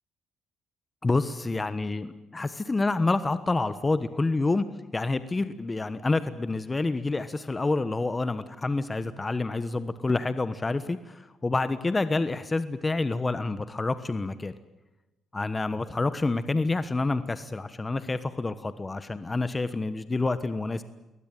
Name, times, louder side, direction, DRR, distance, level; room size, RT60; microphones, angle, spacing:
voice 1, 1.0-4.6 4.9-14.5 15.3-20.8, left 3 dB, 20° left, 12 dB, 1.2 m, -28 dB
21.5 x 19.5 x 9.2 m, 1.0 s
cardioid pair, 90°, 0 cm